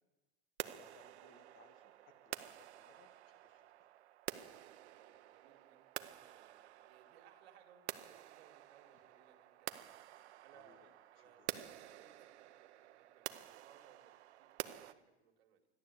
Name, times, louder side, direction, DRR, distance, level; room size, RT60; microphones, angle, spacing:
voice 1, 0.6-3.7 10.5-11.5, left 6 dB, 35° left, 8 dB, 1.9 m, -67 dB
sound 1, 0.6-14.9, right 13 dB, 85° right, 0.9 m, -49 dB
voice 2, 4.8-12.5 12.8-15.7, right 8 dB, 70° right, 5 dB, 2.3 m, -66 dB
14.0 x 11.5 x 8.3 m, 1.1 s
supercardioid pair, 145°, 33 cm